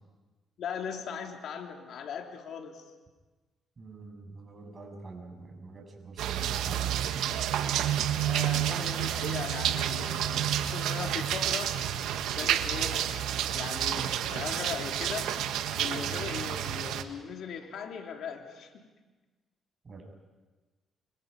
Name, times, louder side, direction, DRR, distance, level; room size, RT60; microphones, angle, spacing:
voice 1, 0.6-2.9 8.2-11.8 12.4-13.1 13.5-18.9, left 7 dB, 70° left, 2 dB, 3.4 m, -39 dB
voice 2, 3.8-7.3 19.8-20.0, right 3 dB, 35° right, 2 dB, 7.4 m, -45 dB
sound 1, 6.2-17.0, right 10 dB, 90° right, 1.3 m, -30 dB
29.0 x 26.0 x 5.5 m, 1.2 s
cardioid pair, 90°, 0 cm